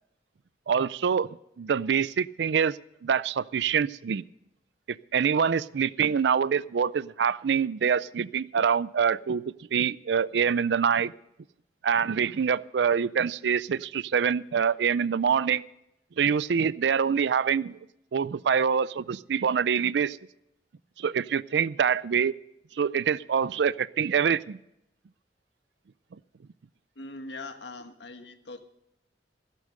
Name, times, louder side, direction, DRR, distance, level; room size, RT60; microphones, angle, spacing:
voice 1, 0.7-4.2 5.1-9.4 9.7-11.1 11.8-15.6 16.2-17.8 18.1-20.2 21.0-22.3 22.8-24.6, right 7 dB, 70° right, 19 dB, 0.4 m, -25 dB
voice 2, 26.9-28.6, left 2 dB, 75° left, 7 dB, 1.4 m, -41 dB
15.5 x 8.4 x 6.6 m, 0.83 s
head